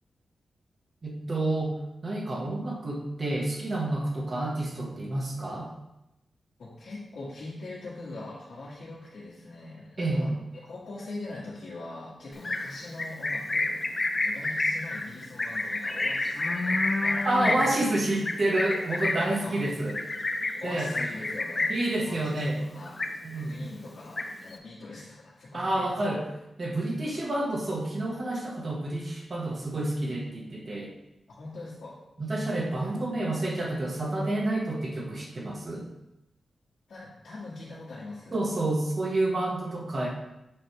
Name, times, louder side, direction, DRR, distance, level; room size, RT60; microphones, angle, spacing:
voice 1, 1.0-5.7 10.0-10.4 17.2-19.9 20.6-20.9 21.7-22.6 23.2-23.5 25.5-26.3 26.6-30.9 32.2-35.8 38.3-40.1, right 1 dB, 40° right, -1 dB, 1.5 m, -29 dB
voice 2, 6.6-10.3 10.6-13.8 14.2-18.0 19.4-19.5 20.6-22.4 22.7-22.9 23.4-26.1 31.3-32.0 33.0-33.1 36.9-38.4, left 2 dB, 80° left, -9 dB, 1.8 m, -42 dB
Livestock farm animals working animals, 12.3-21.9 22.3-22.6 22.8-23.5 23.9-24.6, left 2 dB, 35° left, 0.7 m, -29 dB
7.7 x 5.4 x 3.3 m, 0.90 s
wide cardioid pair, 105°, 0 cm